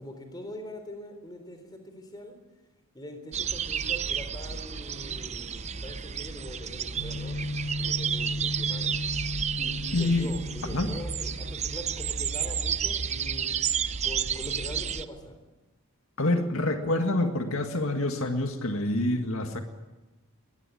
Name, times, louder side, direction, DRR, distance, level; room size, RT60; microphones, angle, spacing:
voice 1, 0.0-2.3 2.9-7.4 7.8-9.0 9.6-13.6 14.0-15.4, equal, 20° left, 7 dB, 3.8 m, -42 dB
sound 1, 3.3-15.0, right 7 dB, 30° right, 0.7 m, -31 dB
sound 2, 6.9-11.8, left 1 dB, 55° left, 5.0 m, -35 dB
voice 2, 9.9-10.3 10.7-10.9 16.2-19.6, left 2 dB, 70° left, 5 dB, 1.9 m, -27 dB
21.5 x 19.5 x 9.3 m, 1.1 s
head